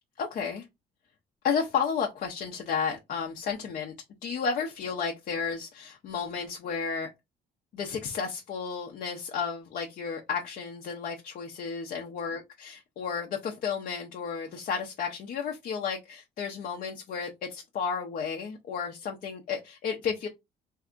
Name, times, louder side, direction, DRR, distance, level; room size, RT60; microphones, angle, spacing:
voice 1, 0.2-0.7 1.4-3.9 4.2-7.1 7.7-20.3, left 6 dB, 55° left, 0.7 m, -32 dB
3.3 x 2.7 x 2.5 m
cardioid pair, 110°, 17 cm